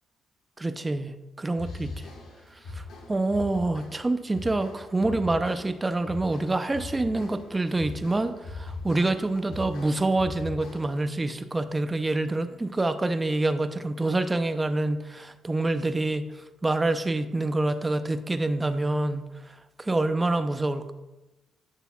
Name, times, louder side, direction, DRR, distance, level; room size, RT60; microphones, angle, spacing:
voice 1, 0.6-2.0 2.8-16.3 16.6-19.3 19.8-20.9, right 2 dB, 20° right, 10 dB, 0.5 m, -26 dB
sound 1, 1.5-11.1, left 3 dB, 70° left, 1.6 m, -41 dB
9.0 x 6.6 x 2.3 m, 1.0 s
cardioid pair, 90°, 0 cm